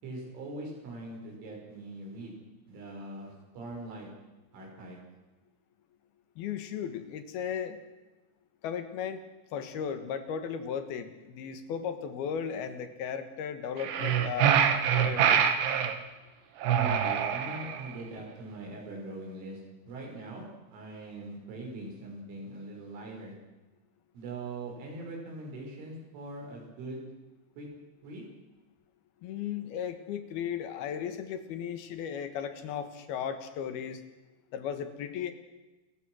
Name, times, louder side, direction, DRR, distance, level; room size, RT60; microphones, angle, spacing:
voice 1, 0.0-2.3 2.7-4.1 4.5-5.0 16.6-19.6 19.9-20.5 20.7-23.3 24.1-27.0 27.6-27.7 28.0-28.2, right 2 dB, 85° right, 0 dB, 8.0 m, -41 dB
voice 2, 6.4-7.8 8.6-9.2 9.5-15.5 29.2-34.0 34.5-35.3, left 8 dB, 65° left, 9 dB, 3.0 m, -36 dB
sound 1, 13.8-16.0 16.6-17.9, right 8 dB, 65° right, 3.4 m, -25 dB
29.5 x 15.0 x 6.3 m, 1.1 s
omnidirectional pair, 5.5 m